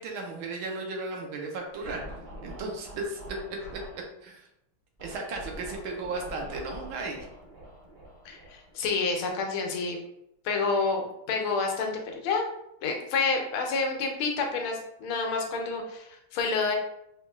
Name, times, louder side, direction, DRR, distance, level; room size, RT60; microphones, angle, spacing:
voice 1, 0.0-2.0 2.4-3.2 4.2-4.4 5.0-7.3, right 3 dB, 80° right, 1 dB, 1.6 m, -35 dB
Scratching (performance technique), 1.7-4.1 5.0-9.3, equal, 35° right, 0.8 m, -45 dB
voice 2, 8.2-10.0 10.4-12.5 12.8-16.8, left 4 dB, 85° left, 2 dB, 1.6 m, -29 dB
5.1 x 3.2 x 2.3 m, 0.81 s
omnidirectional pair, 2.3 m